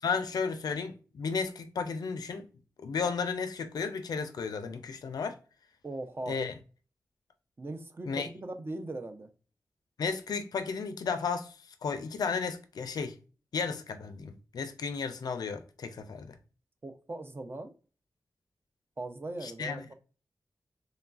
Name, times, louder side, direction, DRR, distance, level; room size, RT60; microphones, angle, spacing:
voice 1, 0.0-2.5 2.8-5.4 6.3-6.5 8.0-8.3 10.0-13.2 13.5-16.4 19.4-19.8, left 5 dB, 80° left, 0.4 m, -33 dB
voice 2, 5.8-6.4 7.6-9.3 16.8-17.7 19.0-19.9, right 2 dB, 35° right, 0.5 m, -39 dB
3.1 x 2.2 x 2.3 m
cardioid pair, 60°, 7 cm